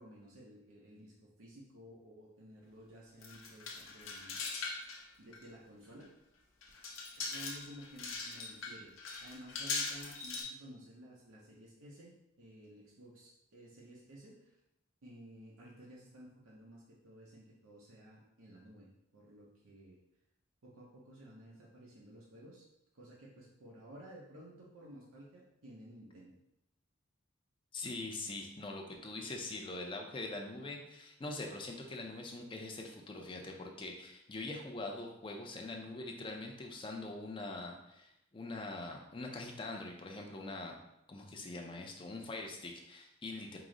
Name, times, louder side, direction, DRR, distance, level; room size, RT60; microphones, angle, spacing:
voice 1, 0.0-4.4 4.7-6.1 7.2-8.9 9.2-14.6 15.0-20.0 20.6-22.6 22.9-26.3, right 1 dB, 85° right, -3 dB, 0.7 m, -54 dB
sound 1, 3.2-5.0 5.3-5.4 6.0-6.1 6.6-10.4, left 4 dB, 80° left, 0.7 m, -41 dB
voice 2, 27.7-40.8 41.1-43.6, left 2 dB, 25° left, 1 dB, 0.4 m, -43 dB
4.8 x 2.0 x 3.7 m, 0.84 s
head